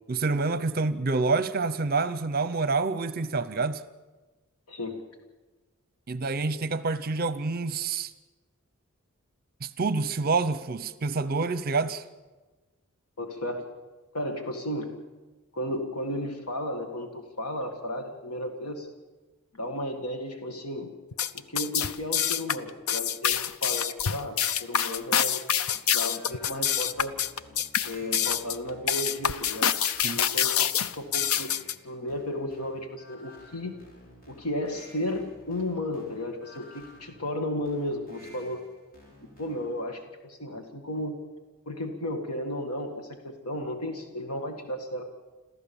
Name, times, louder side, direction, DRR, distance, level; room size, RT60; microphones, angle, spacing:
voice 1, 0.1-3.8 6.1-8.1 9.6-12.0 30.0-30.2, right 3 dB, 45° right, 15 dB, 0.7 m, -27 dB
voice 2, 4.7-5.0 13.2-13.7 14.1-14.9 15.5-18.9 19.5-20.9 21.3-25.4 25.9-27.1 27.8-29.8 30.1-30.7 31.0-31.5 31.8-33.8 34.3-38.6 39.2-41.2 41.7-45.0, left 1 dB, 90° left, 5 dB, 1.9 m, -34 dB
sound 1, 21.1-31.7, left 9 dB, 70° left, 0.7 m, -26 dB
sound 2, 26.1-39.9, left 1 dB, 40° left, 4.8 m, -53 dB
27.0 x 14.5 x 7.1 m, 1.2 s
head